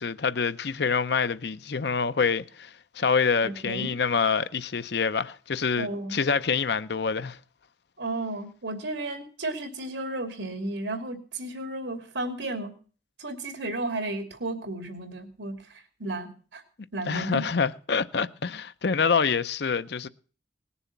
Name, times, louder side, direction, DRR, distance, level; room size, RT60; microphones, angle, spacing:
voice 1, 0.0-7.4 17.1-20.1, left 5 dB, 65° left, 0.6 m, -26 dB
voice 2, 3.4-4.0 5.7-6.2 8.0-12.7 13.2-15.5 16.0-16.6 16.9-17.5, right 2 dB, 90° right, 2.8 m, -33 dB
19.0 x 7.0 x 7.2 m
head